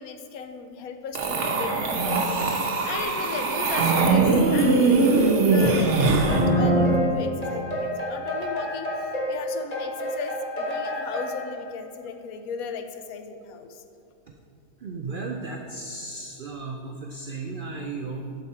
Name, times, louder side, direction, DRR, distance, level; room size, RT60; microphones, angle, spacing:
voice 1, 0.0-13.8, left 5 dB, 75° left, 7 dB, 1.1 m, -37 dB
sound 1, 1.1-6.4, right 3 dB, 55° right, 1.1 m, -21 dB
sound 2, 6.2-11.5, equal, 25° left, 1.5 m, -27 dB
voice 2, 14.8-18.4, right 3 dB, 90° right, 2 dB, 0.4 m, -35 dB
8.1 x 6.5 x 4.3 m, 2.4 s
omnidirectional pair, 1.6 m